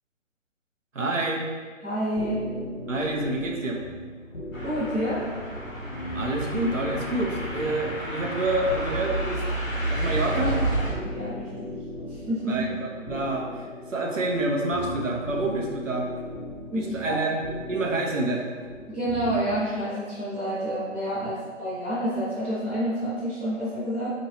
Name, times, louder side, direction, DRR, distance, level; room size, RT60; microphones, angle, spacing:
voice 1, 0.9-1.5 2.9-3.8 6.1-9.4 9.9-10.6 12.4-16.1 16.7-17.4 17.7-18.5, right 2 dB, 75° right, 0 dB, 0.8 m, -28 dB
voice 2, 1.8-2.4 4.6-5.2 11.0-11.8 12.1-12.6 16.7-17.1 18.9-24.1, equal, 5° left, -18 dB, 0.7 m, -29 dB
sound 1, 2.2-19.6, left 1 dB, 60° left, 0.8 m, -38 dB
sound 2, 4.5-10.9, right 1 dB, 90° left, 1.1 m, -30 dB
4.1 x 3.0 x 2.8 m, 1.5 s
figure-of-eight pair, 145°, 39 cm